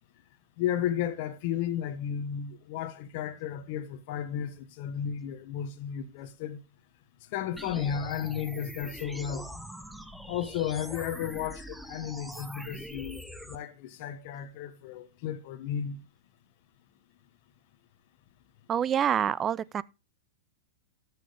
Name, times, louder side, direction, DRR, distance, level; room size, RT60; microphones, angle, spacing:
voice 1, 0.6-6.6 7.3-9.5 10.3-16.0, left 9 dB, 55° left, 1.3 m, -33 dB
sound 1, 7.6-13.6, equal, ahead, 0.8 m, -43 dB
voice 2, 18.7-19.8, right 9 dB, 25° right, 0.4 m, -26 dB
13.5 x 6.4 x 3.4 m
hypercardioid pair, 120°, 0 cm